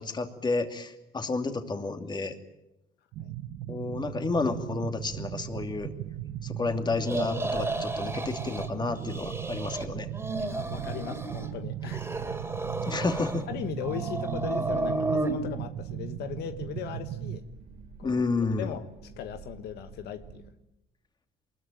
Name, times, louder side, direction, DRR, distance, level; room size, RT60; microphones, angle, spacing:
voice 1, 0.0-2.3 3.7-5.9 6.4-10.1 12.8-13.4 18.0-18.7, left 3 dB, 25° left, 2.7 m, -30 dB
sound 1, 3.1-17.4, right 12 dB, 80° right, 1.0 m, -37 dB
sound 2, 5.0-20.5, right 5 dB, 60° right, 2.9 m, -50 dB
sound 3, 7.0-8.7 9.0-9.9 10.1-11.5 11.8-13.5 13.8-15.3, right 2 dB, 15° right, 3.1 m, -32 dB
voice 2, 10.4-12.2 13.5-17.4 18.0-18.2 18.6-20.4, left 10 dB, 75° left, 1.3 m, -38 dB
24.0 x 21.5 x 9.1 m
cardioid pair, 110°, 17 cm